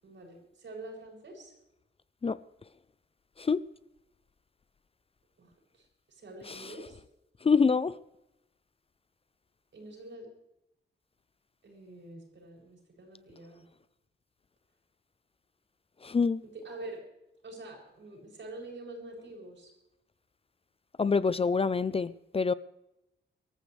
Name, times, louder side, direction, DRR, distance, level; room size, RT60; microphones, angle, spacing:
voice 1, 0.0-1.5 5.4-7.0 9.7-10.3 11.6-13.6 16.4-17.0 17.4-19.7, right 2 dB, 70° right, 7.3 m, -46 dB
voice 2, 7.4-8.0 16.0-16.4 21.0-22.5, left 5 dB, 30° left, 0.5 m, -26 dB
24.5 x 14.5 x 3.3 m
wide cardioid pair, 130°, 20 cm